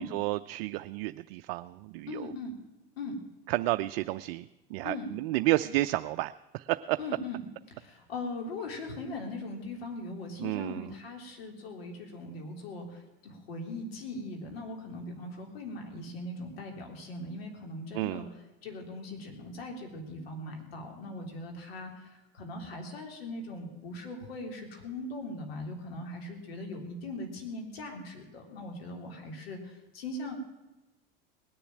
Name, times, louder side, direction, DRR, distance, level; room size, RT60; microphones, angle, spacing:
voice 1, 0.1-2.3 3.5-4.4 4.7-7.0 10.4-10.9 17.9-18.2, right 18 dB, 70° right, 11 dB, 0.5 m, -31 dB
voice 2, 2.1-2.5 3.0-3.2 4.8-5.1 7.0-30.3, left 2 dB, 85° left, 3 dB, 3.5 m, -40 dB
19.5 x 6.9 x 9.0 m, 1.0 s
hypercardioid pair, 95°, 29 cm